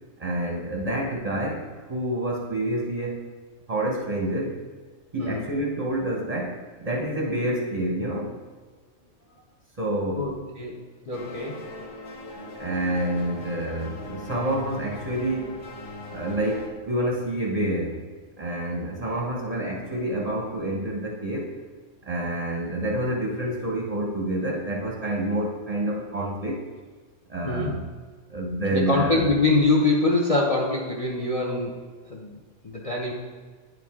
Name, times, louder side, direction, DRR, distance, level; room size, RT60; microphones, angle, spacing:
voice 1, 0.2-3.2 3.7-4.5 5.1-8.4 9.8-10.3 12.6-15.6 16.1-18.0 18.4-21.5 22.0-26.6 27.3-27.8 28.3-29.2, right 1 dB, 35° right, -2 dB, 0.8 m, -28 dB
voice 2, 10.2-11.6 27.4-27.7 28.7-32.4 32.6-33.1, left 2 dB, 35° left, -1 dB, 0.6 m, -24 dB
sound 1, 11.1-16.7, left 2 dB, 70° left, 1.2 m, -40 dB
9.6 x 4.6 x 3.6 m, 1.5 s
omnidirectional pair, 1.3 m